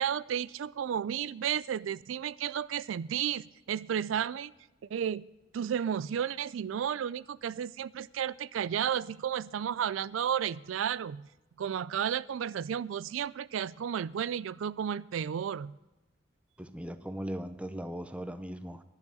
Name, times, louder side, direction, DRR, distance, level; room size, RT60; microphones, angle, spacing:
voice 1, 0.0-4.5 4.9-5.2 5.5-11.2 11.6-15.8, right 8 dB, 85° right, 20 dB, 0.4 m, -32 dB
voice 2, 16.6-18.8, equal, 5° right, 11 dB, 0.7 m, -38 dB
11.0 x 7.1 x 9.2 m, 1.0 s
head